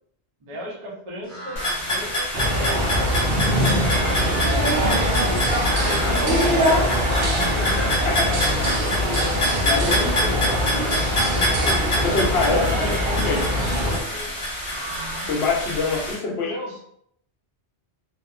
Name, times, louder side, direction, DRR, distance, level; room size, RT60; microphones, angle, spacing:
voice 1, 0.4-5.9 6.2-6.6 6.9-7.0 7.4-8.1 9.8-10.8 11.2-13.5 14.1-14.4 16.5-16.8, equal, 40° right, -4 dB, 0.5 m, -36 dB
sound 1, 1.2-15.5, equal, 85° right, 1.3 m, -38 dB
sound 2, 1.6-16.2, left 1 dB, 35° left, 0.7 m, -27 dB
sound 3, 2.3-14.0, equal, 65° right, 0.8 m, -22 dB
voice 2, 4.3-4.7 6.0-6.9 8.1-8.7 9.1-9.2 9.6-10.1 11.7-11.8 12.0-13.4 15.3-16.5, left 4 dB, 70° left, 0 dB, 0.8 m, -26 dB
2.8 x 2.0 x 2.3 m, 0.70 s
omnidirectional pair, 1.1 m